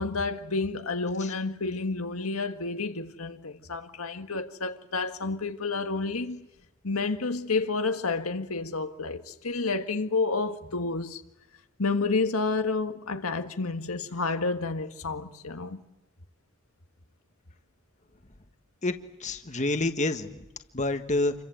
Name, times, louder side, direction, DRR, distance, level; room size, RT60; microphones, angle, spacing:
voice 1, 0.0-6.5 6.8-11.2 11.8-15.8, left 3 dB, 90° left, 1.8 m, -30 dB
voice 2, 19.2-20.5 20.7-21.3, left 2 dB, 35° left, 1.4 m, -28 dB
28.0 x 24.0 x 7.9 m
head